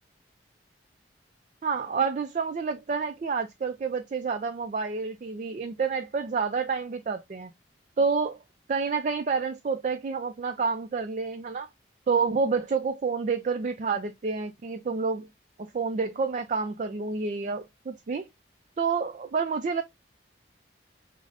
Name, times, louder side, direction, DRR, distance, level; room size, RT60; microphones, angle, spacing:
voice 1, 1.6-7.5 8.0-8.4 8.7-11.7 12.1-15.3 15.6-18.3 18.8-19.8, right 5 dB, 40° right, 0.3 m, -29 dB
4.9 x 2.0 x 2.4 m
head